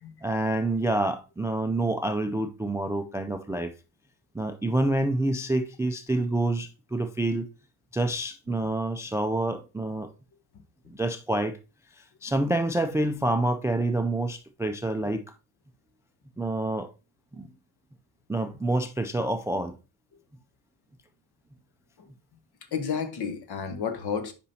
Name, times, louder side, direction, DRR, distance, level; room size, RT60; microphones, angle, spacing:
voice 1, 0.2-3.7 4.3-7.5 7.9-10.1 10.9-11.6 11.9-15.2 16.4-16.9 17.3-17.5 18.3-19.8, right 2 dB, 5° right, 0.3 m, -27 dB
voice 2, 22.7-24.3, left 6 dB, 50° left, 1.2 m, -31 dB
8.3 x 5.2 x 2.8 m
cardioid pair, 105°, 48 cm